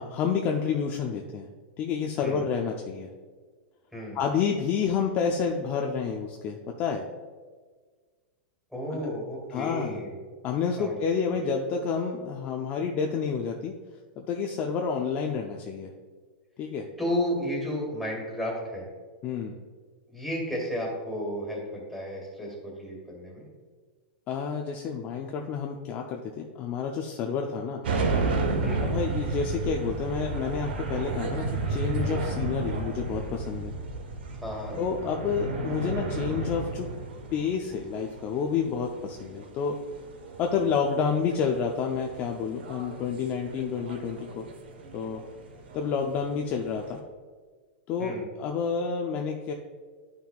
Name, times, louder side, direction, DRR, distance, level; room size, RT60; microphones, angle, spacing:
voice 1, 0.0-1.5 1.8-3.1 4.1-7.1 8.9-9.1 9.5-10.0 10.4-13.7 14.2-15.9 16.6-16.9 19.2-19.6 24.3-27.8 28.9-33.7 34.8-36.9 37.3-39.8 40.4-44.5 44.9-45.2 45.7-47.0 47.9-49.5, left 6 dB, 30° left, 1 dB, 0.5 m, -29 dB
voice 2, 8.7-10.2 10.8-11.0 17.0-18.9 20.1-23.5 28.6-28.8 34.4-34.8 48.0-48.3, equal, ahead, -4 dB, 2.1 m, -32 dB
sound 1, 27.8-47.0, right 3 dB, 80° right, 1.1 m, -33 dB
11.0 x 5.8 x 2.4 m, 1.5 s
supercardioid pair, 145°, 6 cm